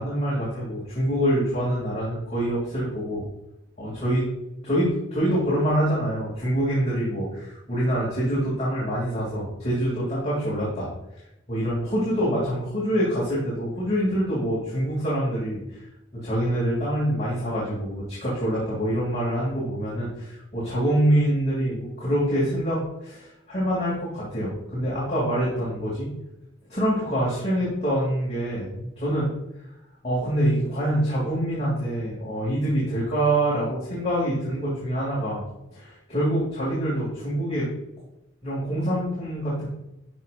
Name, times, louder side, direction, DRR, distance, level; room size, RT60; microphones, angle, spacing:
voice 1, 0.0-3.2 3.8-4.2 4.6-10.9 11.5-15.8 16.1-26.1 26.7-29.3 30.0-35.4 35.7-37.7 38.4-39.7, equal, 35° left, -8 dB, 2.6 m, -25 dB
12.0 x 5.3 x 2.5 m, 0.90 s
head